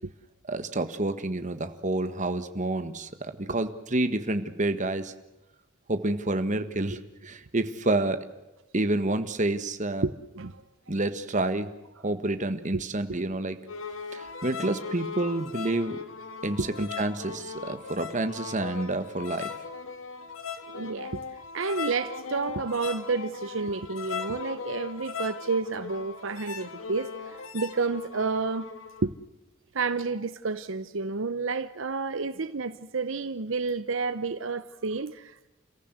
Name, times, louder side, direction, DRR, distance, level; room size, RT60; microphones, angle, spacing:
voice 1, 0.5-5.1 5.9-8.2 8.7-10.0 10.9-11.7 12.0-13.6 14.1-16.0 16.4-19.5, right 2 dB, 40° right, 1.6 m, -29 dB
voice 2, 10.0-10.6 12.7-12.8 16.6-16.7 20.7-21.2 21.5-28.7 29.0-29.1 29.7-35.5, right 4 dB, 70° right, 0.8 m, -30 dB
sound 1, 13.7-29.1, left 5 dB, 85° left, 2.0 m, -38 dB
29.5 x 15.0 x 8.1 m
head